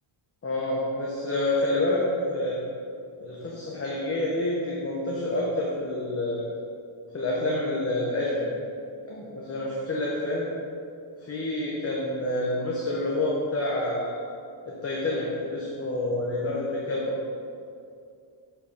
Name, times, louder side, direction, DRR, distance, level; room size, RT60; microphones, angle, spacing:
voice 1, 0.4-2.6 3.2-6.5 7.1-8.5 9.0-10.5 11.2-14.2 14.6-17.2, left 1 dB, 30° left, -4 dB, 1.0 m, -28 dB
7.3 x 5.6 x 5.1 m, 2.4 s
wide cardioid pair, 165°, 50 cm